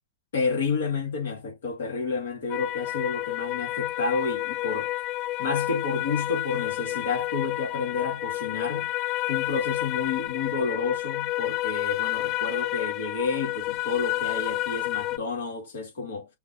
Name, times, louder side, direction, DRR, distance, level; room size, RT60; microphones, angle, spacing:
voice 1, 0.3-4.9 5.4-8.9 9.3-16.3, left 4 dB, 65° left, 2.4 m, -30 dB
sound 1, 2.5-15.2, left 17 dB, 40° left, 0.3 m, -30 dB
5.7 x 2.8 x 2.8 m
figure-of-eight pair, 100°, 0 cm